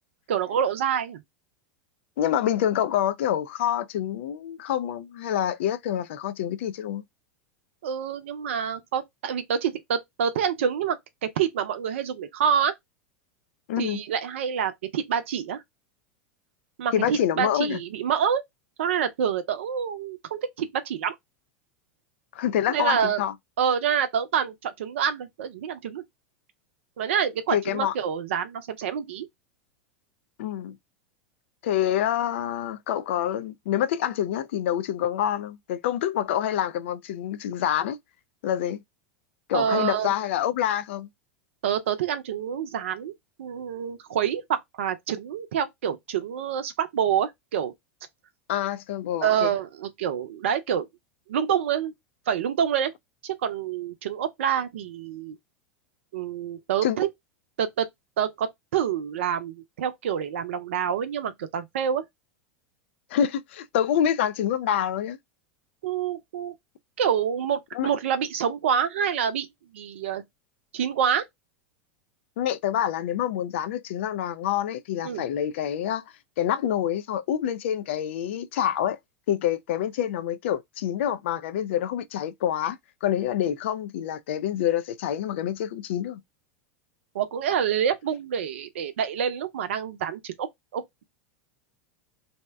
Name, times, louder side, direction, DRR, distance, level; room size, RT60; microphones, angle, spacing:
voice 1, 0.3-1.2 7.8-12.7 13.8-15.6 16.8-18.4 18.8-21.1 22.7-23.2 23.6-26.0 27.0-29.3 39.5-40.1 41.6-43.1 43.4-47.7 49.2-50.9 51.3-51.9 52.3-52.9 53.2-55.4 56.1-57.1 57.6-57.9 58.2-62.0 65.8-66.5 67.0-69.5 69.7-70.2 70.7-71.2 75.0-75.2 87.1-90.5 90.7-90.8, right 8 dB, 70° right, 0.6 m, -27 dB
voice 2, 2.2-7.0 13.7-14.0 16.9-17.8 22.3-23.3 27.5-27.9 30.4-30.8 31.6-38.0 38.4-38.8 39.5-41.1 48.5-49.5 56.8-57.0 63.1-65.2 67.7-67.9 72.4-76.0 76.4-79.0 79.3-86.2, left 10 dB, 65° left, 0.4 m, -27 dB
2.7 x 2.2 x 3.4 m
hypercardioid pair, 90°, 7 cm